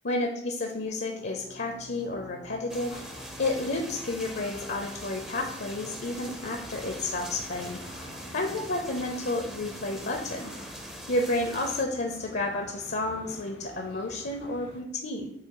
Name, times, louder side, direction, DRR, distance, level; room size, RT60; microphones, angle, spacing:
voice 1, 0.0-2.9 3.4-10.5 11.1-15.3, left 2 dB, 70° left, 4 dB, 0.7 m, -31 dB
sound 1, 0.9-12.2, equal, 65° right, 2.0 m, -50 dB
sound 2, 2.7-11.8, equal, 5° right, 0.5 m, -43 dB
sound 3, 2.9-14.8, left 1 dB, 90° left, 1.7 m, -47 dB
8.2 x 2.8 x 4.8 m, 0.80 s
head